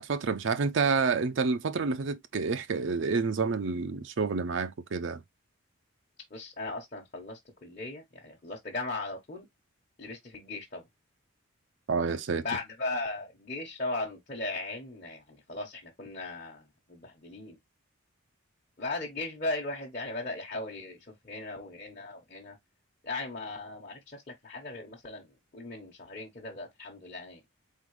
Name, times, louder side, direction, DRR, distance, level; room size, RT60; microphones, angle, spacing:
voice 1, 0.0-5.2 11.9-12.4, right 4 dB, 60° right, 0.5 m, -29 dB
voice 2, 6.3-9.4 10.0-10.8 12.4-16.6 16.9-17.6 18.8-21.0 21.2-22.6 23.0-25.3 25.5-27.4, left 2 dB, 40° left, 1.0 m, -37 dB
4.2 x 3.7 x 3.1 m
head